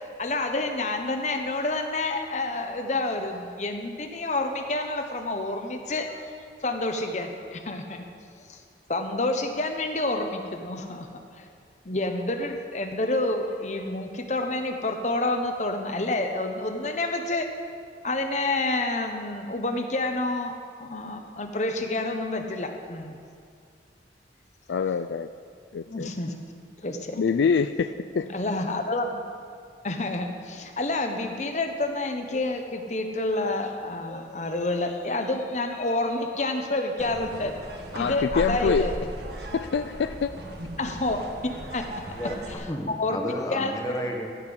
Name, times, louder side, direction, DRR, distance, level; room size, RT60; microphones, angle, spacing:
voice 1, 0.2-8.1 8.5-8.6 8.9-11.1 11.4-11.5 11.8-17.5 18.0-23.2 25.9-26.3 26.8-27.2 28.3-29.3 29.8-37.5 37.9-39.0 40.8-41.8 43.0-43.2 43.5-44.1, left 2 dB, 40° left, 5 dB, 1.0 m, -29 dB
voice 2, 24.7-25.3 25.7-26.1 27.2-28.3 37.9-38.9 39.5-40.3, left 6 dB, 75° left, 11 dB, 0.3 m, -25 dB
sound 1, 37.0-42.5, right 1 dB, 65° right, 1.5 m, -37 dB
voice 3, 42.7-44.3, equal, 20° left, 2 dB, 1.2 m, -32 dB
16.0 x 5.9 x 8.5 m, 2.2 s
head